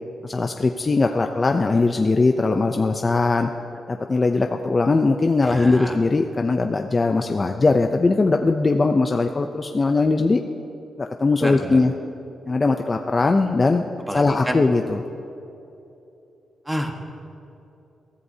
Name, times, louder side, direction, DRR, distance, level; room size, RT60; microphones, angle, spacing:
voice 1, 0.2-3.5 3.9-10.4 11.0-11.9 12.5-13.8 14.1-15.0, left 3 dB, 25° left, 4 dB, 0.5 m, -20 dB
voice 2, 5.4-6.0 11.4-11.8 14.1-14.6 16.6-16.9, equal, 5° right, 2 dB, 1.3 m, -28 dB
22.5 x 14.0 x 2.8 m, 2.9 s
wide cardioid pair, 140°, 0 cm